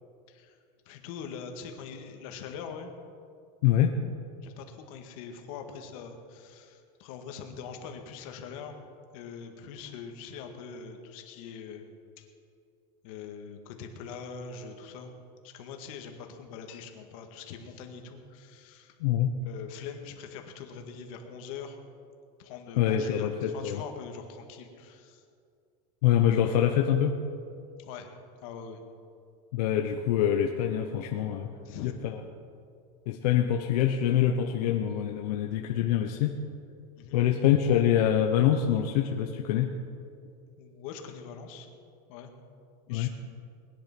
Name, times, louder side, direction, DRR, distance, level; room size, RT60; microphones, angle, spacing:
voice 1, 0.9-2.9 4.4-8.8 9.1-11.9 12.2-12.3 13.0-15.1 15.4-18.9 19.5-21.8 22.4-25.2 27.8-28.1 28.4-28.8 31.6-31.9 37.0-37.3 40.6-41.7 42.1-42.3 42.9-43.1, left 6 dB, 60° left, 4 dB, 1.9 m, -43 dB
voice 2, 3.6-4.0 19.0-19.3 22.8-23.8 26.0-27.2 29.5-31.5 31.8-32.2 33.1-36.3 37.1-39.7 42.9-43.1, left 10 dB, 85° left, 3 dB, 1.0 m, -25 dB
20.5 x 10.5 x 6.0 m, 2.4 s
supercardioid pair, 170°, 20 cm